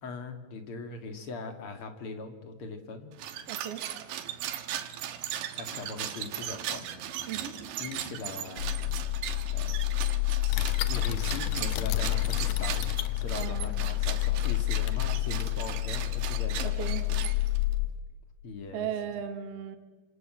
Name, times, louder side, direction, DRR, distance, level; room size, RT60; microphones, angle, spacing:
voice 1, 0.0-3.1 5.6-6.8 7.8-8.7 9.5-9.8 10.4-16.9 18.4-18.9, left 3 dB, 40° left, 7 dB, 2.2 m, -40 dB
sound 1, 3.1-17.7, right 11 dB, 85° right, 3.7 m, -38 dB
voice 2, 3.5-3.8 7.3-7.6 13.4-13.7 16.6-17.1 18.7-19.8, right 9 dB, 50° right, 7 dB, 1.9 m, -36 dB
sound 2, 8.6-17.9, left 17 dB, 90° left, 4.6 m, -29 dB
sound 3, 10.5-15.8, left 9 dB, 70° left, 1.9 m, -38 dB
29.0 x 26.5 x 7.8 m, 1.3 s
omnidirectional pair, 5.0 m